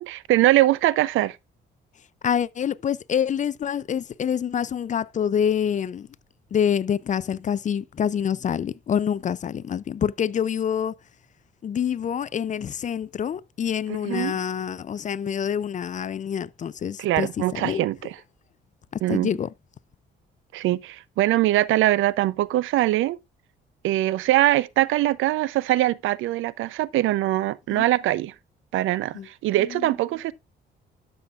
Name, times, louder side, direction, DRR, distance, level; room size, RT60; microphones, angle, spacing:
voice 1, 0.0-1.4 13.9-14.4 17.0-18.2 19.0-19.3 20.5-23.2 23.8-28.3 28.7-30.3, right 15 dB, 85° right, 0.5 m, -22 dB
voice 2, 2.2-6.1 6.5-10.9 11.6-17.9 19.1-19.5 27.7-27.8 29.1-29.3 29.6-29.9, left 8 dB, 40° left, 0.4 m, -26 dB
12.0 x 6.9 x 2.4 m
cardioid pair, 90°, 20 cm